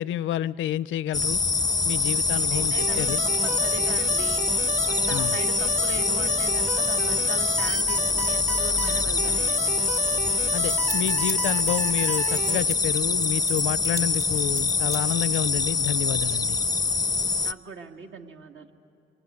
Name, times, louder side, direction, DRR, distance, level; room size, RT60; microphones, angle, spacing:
voice 1, 0.0-1.4 1.8-3.2 5.1-5.4 10.5-16.6, left 12 dB, 80° left, 19 dB, 0.6 m, -29 dB
sound 1, 1.1-17.5, left 4 dB, 20° left, 0.5 m, -24 dB
voice 2, 2.3-4.4 4.8-9.7 17.4-18.7, right 4 dB, 70° right, 4 dB, 1.8 m, -39 dB
sound 2, 2.8-12.6, right 3 dB, 35° right, 1.0 m, -33 dB
sound 3, 9.6-9.7 9.9-10.0 10.3-12.8 13.2-15.4, right 3 dB, 50° right, 3.0 m, -36 dB
24.0 x 23.5 x 9.6 m, 2.6 s
cardioid pair, 90°, 20 cm